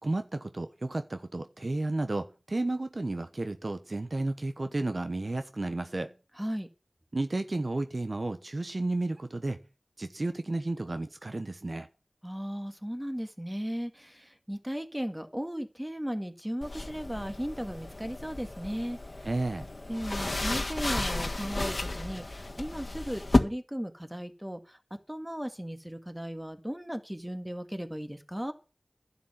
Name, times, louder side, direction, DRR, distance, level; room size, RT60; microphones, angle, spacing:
voice 1, 0.0-6.1 7.1-9.6 10.0-11.9 19.2-19.7, right 2 dB, 60° right, 9 dB, 1.0 m, -32 dB
voice 2, 6.4-6.7 12.2-19.3 19.9-24.8 25.1-28.5, equal, 10° right, 8 dB, 2.0 m, -36 dB
sound 1, 16.6-23.4, left 2 dB, 55° left, 1.5 m, -32 dB
11.0 x 7.0 x 9.1 m, 0.34 s
wide cardioid pair, 40°, 0 cm